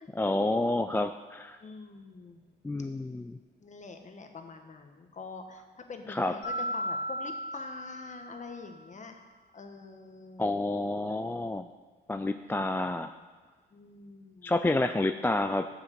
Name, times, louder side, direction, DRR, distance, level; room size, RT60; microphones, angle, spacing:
voice 1, 0.2-1.6 2.6-3.4 6.1-6.3 10.4-11.7 12.1-13.1 14.4-15.7, left 2 dB, 10° left, 8 dB, 0.3 m, -29 dB
voice 2, 1.6-2.4 3.6-9.3 9.5-10.6 13.7-14.5, left 4 dB, 35° left, 5 dB, 1.3 m, -45 dB
Mallet percussion, 6.4-8.8, equal, 85° left, 3.0 m, -36 dB
7.1 x 6.4 x 7.6 m, 1.4 s
cardioid pair, 90°, 20 cm